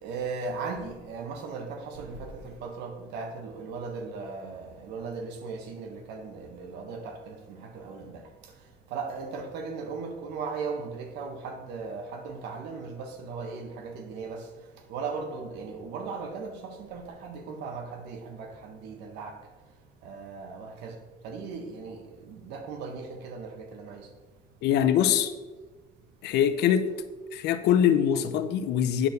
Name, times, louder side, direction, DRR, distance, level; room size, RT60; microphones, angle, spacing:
voice 1, 0.0-8.2 8.9-14.5 14.9-19.4 20.0-21.0 21.2-24.1, right 4 dB, 85° right, 1.4 m, -37 dB
voice 2, 24.6-25.3 26.2-26.8 27.3-29.1, left 9 dB, 80° left, 0.8 m, -23 dB
9.9 x 4.6 x 6.6 m
cardioid pair, 110°, 17 cm